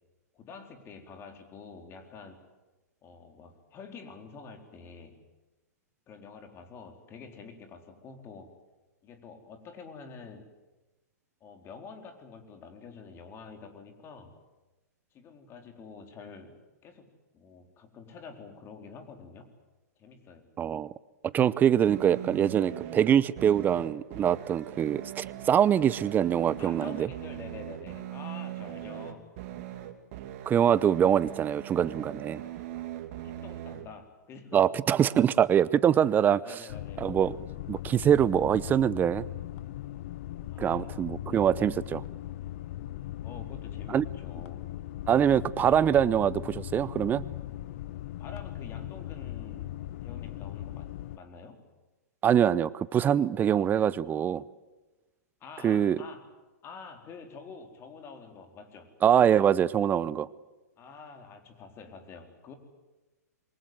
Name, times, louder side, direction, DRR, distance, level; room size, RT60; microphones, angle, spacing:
voice 1, 0.3-2.4 3.0-5.2 6.1-8.6 9.0-10.5 11.4-14.4 15.1-19.5 20.0-20.5 26.6-29.3 33.2-34.6 35.0-35.2 36.4-37.1 40.5-41.7 43.2-44.6 48.2-49.7 50.0-51.6 55.4-56.3 56.6-58.9 60.8-62.6, left 5 dB, 25° left, 5 dB, 4.1 m, -47 dB
voice 2, 20.6-20.9 21.3-27.1 30.5-32.4 34.5-36.6 37.0-37.4 37.7-39.3 40.6-42.0 43.9-44.1 45.1-47.2 52.2-54.4 55.6-56.0 59.0-60.3, right 9 dB, 20° right, 20 dB, 0.8 m, -24 dB
sound 1, 21.9-33.9, right 12 dB, 45° right, 2.9 m, -40 dB
sound 2, 36.7-51.2, left 14 dB, 50° left, 0.9 m, -39 dB
27.0 x 24.0 x 7.9 m, 1.1 s
hypercardioid pair, 115°, 9 cm